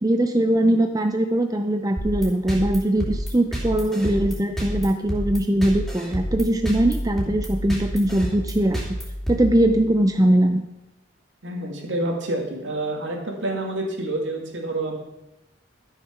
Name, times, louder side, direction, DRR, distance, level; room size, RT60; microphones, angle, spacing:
voice 1, 0.0-8.8 9.3-10.6, right 1 dB, 20° right, 6 dB, 0.5 m, -21 dB
sound 1, 2.0-10.1, equal, ahead, 2.9 m, -30 dB
voice 2, 11.4-15.0, right 1 dB, 70° right, 1 dB, 2.4 m, -28 dB
13.0 x 6.6 x 6.0 m, 0.96 s
head